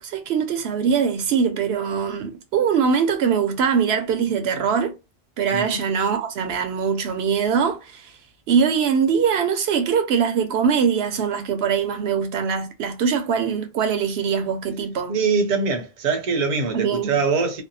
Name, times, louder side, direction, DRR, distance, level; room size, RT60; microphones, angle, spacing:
voice 1, 0.0-4.9 5.4-8.1 8.5-15.1 16.7-17.2, right 6 dB, 85° right, 0.8 m, -22 dB
voice 2, 15.1-17.6, right 4 dB, 55° right, 0.6 m, -23 dB
2.6 x 2.1 x 2.6 m
omnidirectional pair, 1.0 m